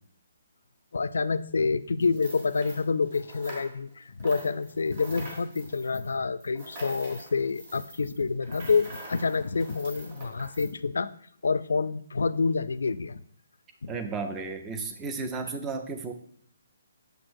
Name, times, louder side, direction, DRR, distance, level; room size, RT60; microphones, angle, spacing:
voice 1, 0.9-11.1 11.4-13.2 13.8-13.9, left 4 dB, 80° left, 14 dB, 0.3 m, -28 dB
sound 1, 2.0-3.9 4.2-10.7, right 2 dB, 30° right, 1.3 m, -45 dB
voice 2, 13.9-16.1, right 4 dB, 10° right, 7 dB, 0.3 m, -33 dB
6.7 x 6.1 x 2.6 m, 0.62 s
hypercardioid pair, 180°, 0 cm